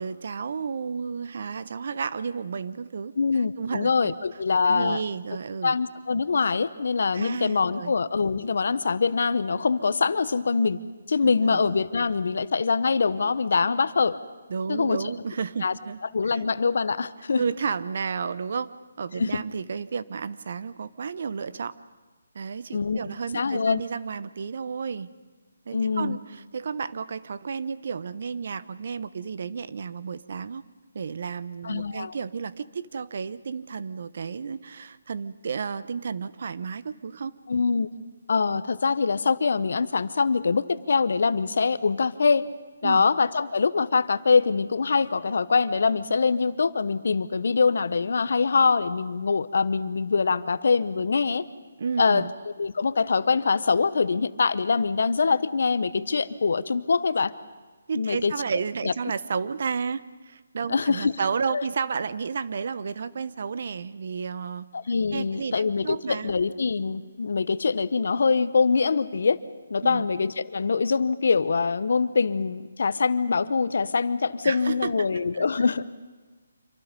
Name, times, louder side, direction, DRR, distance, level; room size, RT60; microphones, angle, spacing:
voice 1, 0.0-3.1 3.6-4.2 4.7-5.8 7.1-7.9 11.2-11.6 14.5-16.0 16.3-16.4 17.4-18.7 19.0-21.7 22.3-25.1 25.7-30.6 30.9-37.4 42.8-43.0 51.8-52.3 57.9-64.7 65.1-66.3 69.8-70.0 74.4-75.4, right 5 dB, 55° right, 15 dB, 1.0 m, -32 dB
voice 2, 3.2-5.0 5.6-10.8 11.1-14.2 14.7-15.0 15.6-15.8 16.1-17.4 19.2-19.4 22.7-23.0 23.3-23.8 25.7-26.2 31.6-32.1 37.5-37.9 38.3-42.5 42.8-51.4 52.0-57.3 57.9-58.3 58.8-58.9 60.7-61.1 61.5-61.6 64.7-69.4 69.7-75.8, left 4 dB, 65° left, 15 dB, 1.1 m, -24 dB
26.5 x 25.0 x 5.3 m, 1.3 s
hypercardioid pair, 160°, 0 cm